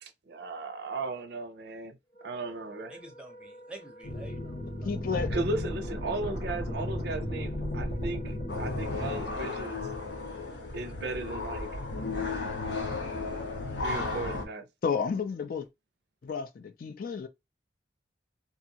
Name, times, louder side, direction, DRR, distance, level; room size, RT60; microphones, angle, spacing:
voice 1, 0.0-2.0 2.2-2.9 5.3-9.8 10.7-11.7 13.8-14.7, right 3 dB, 60° right, 0.5 m, -36 dB
Wind instrument woodwind instrument, 2.1-12.2, equal, 25° left, 0.8 m, -51 dB
voice 2, 2.9-5.4, right 2 dB, 5° right, 0.7 m, -49 dB
sound 1, 4.0-9.2, left 1 dB, 85° left, 1.1 m, -34 dB
voice 3, 4.8-5.3 14.8-15.7 16.2-17.3, left 6 dB, 50° left, 0.3 m, -31 dB
sound 2, 8.5-14.4, left 3 dB, 70° left, 0.7 m, -34 dB
2.8 x 2.4 x 2.7 m
head